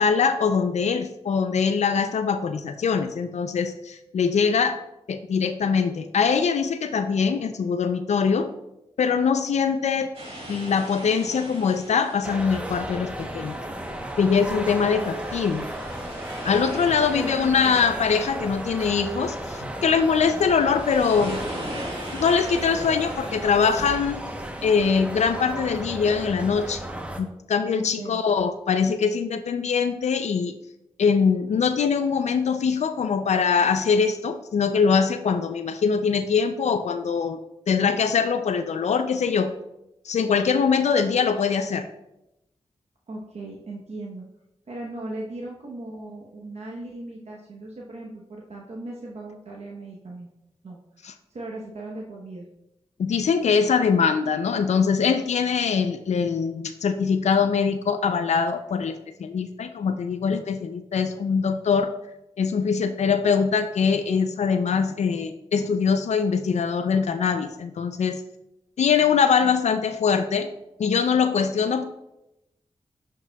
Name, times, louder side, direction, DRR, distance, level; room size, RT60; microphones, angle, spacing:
voice 1, 0.0-4.8 5.1-8.5 9.0-10.1 10.5-13.6 14.2-15.7 16.4-21.5 22.1-24.2 24.6-26.8 27.2-30.5 31.0-37.4 37.7-39.5 40.0-41.9 51.0-51.1 53.0-61.9 62.4-68.2 68.8-70.5 70.8-71.8, left 6 dB, 85° left, 9 dB, 0.4 m, -23 dB
sound 1, 10.1-24.5, right 1 dB, 55° right, 2.0 m, -41 dB
sound 2, 12.2-27.2, right 1 dB, 10° right, 0.9 m, -34 dB
voice 2, 17.1-17.9 27.7-28.2 43.1-44.2 44.7-50.3 50.6-50.8 51.3-52.4, right 2 dB, 70° right, -2 dB, 0.9 m, -37 dB
10.5 x 4.8 x 2.3 m, 0.89 s
wide cardioid pair, 65°, 11 cm